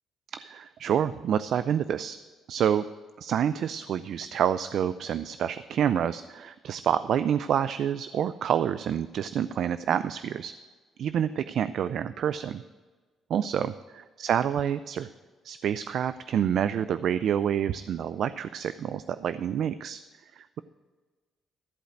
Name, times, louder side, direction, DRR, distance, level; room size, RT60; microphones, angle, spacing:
voice 1, 0.3-2.2 2.5-2.9 3.2-10.5 11.0-12.6 13.3-15.1 15.4-20.0 20.4-20.6, right 9 dB, 70° right, 13 dB, 0.3 m, -28 dB
14.0 x 5.1 x 7.7 m, 1.4 s
cardioid pair, 90°, 0 cm